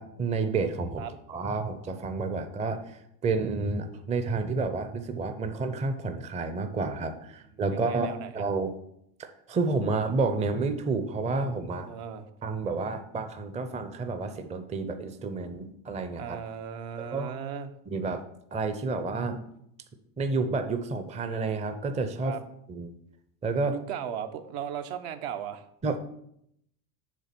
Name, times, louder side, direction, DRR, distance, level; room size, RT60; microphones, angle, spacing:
voice 1, 0.0-8.7 9.2-11.9 12.4-16.4 17.0-17.3 17.9-18.2 18.5-19.4 20.2-22.4 22.7-22.9 23.4-23.8 25.8-26.0, right 3 dB, 15° right, 8 dB, 0.5 m, -30 dB
voice 2, 7.7-8.5 11.9-12.3 16.2-17.7 22.2-22.4 23.7-25.7, right 8 dB, 65° right, 8 dB, 0.9 m, -37 dB
7.4 x 3.4 x 5.9 m, 0.74 s
supercardioid pair, 100°, 49 cm